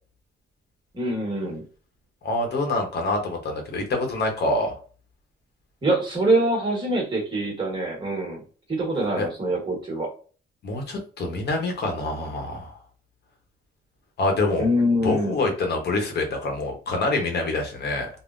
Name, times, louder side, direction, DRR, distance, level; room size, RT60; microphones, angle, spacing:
voice 1, 0.9-1.6 5.8-8.4 8.7-10.1 14.6-15.5, right 1 dB, 25° right, 0 dB, 1.2 m, -24 dB
voice 2, 2.2-4.7 9.2-9.3 10.6-12.7 14.2-14.7 15.0-18.1, left 2 dB, 60° left, 2 dB, 0.9 m, -26 dB
3.5 x 2.0 x 2.5 m, 0.39 s
cardioid pair, 135°, 19 cm